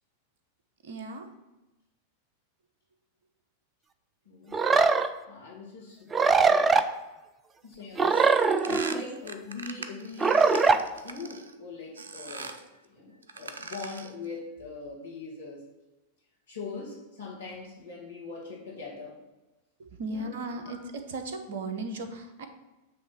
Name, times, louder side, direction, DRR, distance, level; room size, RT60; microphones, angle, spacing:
voice 1, 0.8-1.3 19.8-20.8 21.1-22.5, right 2 dB, 55° right, 7 dB, 0.9 m, -36 dB
voice 2, 4.2-4.6 5.3-6.9 7.6-15.6 16.5-19.2 20.0-20.8, left 4 dB, 70° left, -4 dB, 2.0 m, -42 dB
sound 1, 4.5-5.1 6.1-6.8 8.0-9.0 10.2-10.8, right 4 dB, 20° right, 0.4 m, -21 dB
sound 2, 8.1-11.5 12.0-12.7 13.2-14.2, right 4 dB, 70° right, 0.5 m, -41 dB
7.6 x 3.3 x 5.9 m, 1.0 s
figure-of-eight pair, 90°, 0 cm